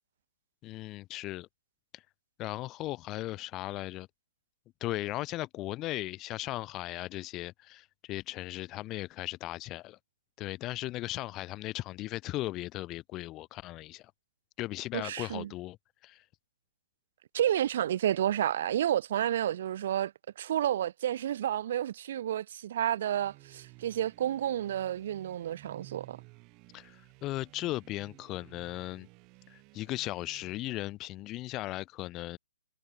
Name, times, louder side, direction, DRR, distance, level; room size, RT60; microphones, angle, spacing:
voice 1, 0.6-1.5 1.9-2.0 2.4-4.1 4.8-10.0 10.4-14.1 14.6-15.8 16.0-16.2 26.7-29.1 29.5-32.4, left 17 dB, 25° left, 1.3 m, -37 dB
voice 2, 14.9-15.5 17.3-26.2, right 11 dB, 50° right, 0.8 m, -30 dB
sound 1, 23.1-31.0, right 27 dB, 30° right, 2.4 m, -55 dB
hypercardioid pair, 135°, 0 cm